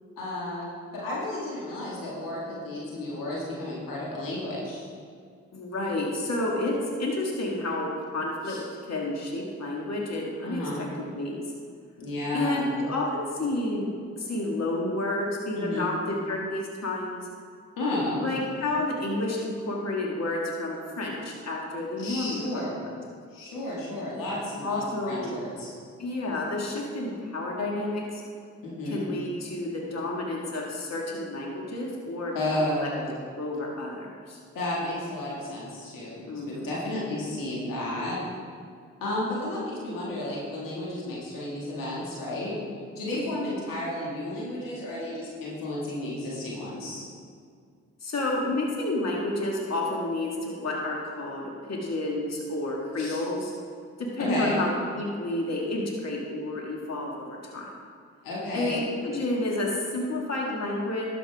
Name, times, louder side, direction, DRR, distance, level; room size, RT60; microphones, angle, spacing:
voice 1, 0.2-4.9 8.4-8.6 10.4-10.9 12.0-12.7 15.6-15.9 17.8-18.3 22.0-22.8 23.3-25.7 28.6-29.0 32.3-33.1 34.5-38.2 39.0-42.6 43.0-47.1 53.0-53.2 54.2-54.6 58.2-58.8, left 1 dB, 85° left, -5 dB, 2.1 m, -32 dB
voice 2, 5.5-8.6 8.9-10.9 11.1-11.4 12.3-13.9 14.2-17.3 18.2-22.9 24.6-25.4 26.0-28.2 28.9-32.9 33.4-34.4 36.3-36.7 43.1-43.5 48.0-53.5 54.0-57.7 58.5-61.1, left 2 dB, 50° left, -2 dB, 1.9 m, -30 dB
12.0 x 7.0 x 3.5 m, 2.2 s
supercardioid pair, 40°, 33 cm